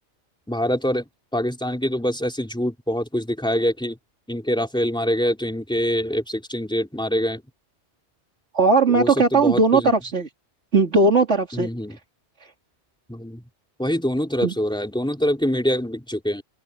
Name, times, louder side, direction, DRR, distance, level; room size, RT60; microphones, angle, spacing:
voice 1, 0.5-4.0 4.3-7.4 8.9-9.9 11.5-12.0 13.1-13.5 13.8-16.4, equal, 5° left, 3.5 m, -25 dB
voice 2, 8.5-10.3 10.7-11.7 14.4-14.5, right 3 dB, 90° right, 3.1 m, -18 dB
open air
omnidirectional pair, 1.2 m